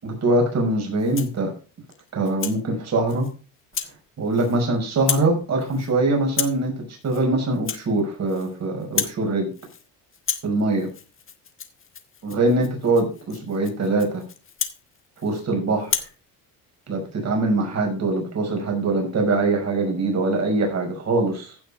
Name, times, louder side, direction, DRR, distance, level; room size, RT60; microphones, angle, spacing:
voice 1, 0.0-1.5 2.1-3.3 4.2-6.7 7.0-9.5 10.4-10.9 12.2-14.2 15.2-16.0 16.9-21.6, right 2 dB, 40° right, 2 dB, 5.7 m, -23 dB
Rattle (instrument), 1.0-1.4 1.9-2.6 3.1-3.3 3.7-4.0 4.3-4.7 4.9-5.3 5.6-5.9 6.3-6.7 7.0-7.3 7.5-8.5 8.8-9.2 9.5-9.9 10.1-15.5 15.8-16.2, left 7 dB, 30° left, 1.4 m, -32 dB
15.5 x 6.4 x 4.2 m, 0.34 s
cardioid pair, 100°, 39 cm